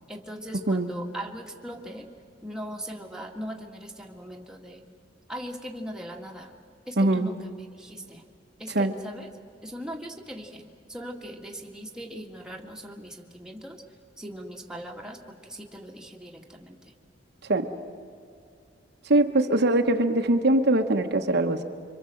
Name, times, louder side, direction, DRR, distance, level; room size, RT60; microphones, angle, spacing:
voice 1, 0.1-2.1 2.4-4.9 5.3-6.5 6.9-7.5 7.8-8.2 8.6-9.3 9.6-13.8 14.2-16.8, equal, 5° right, 0 dB, 2.0 m, -39 dB
voice 2, 7.0-7.3 8.7-8.9 17.4-17.7 19.0-21.6, right 2 dB, 60° right, 5 dB, 1.2 m, -22 dB
26.5 x 24.5 x 7.8 m, 2.4 s
head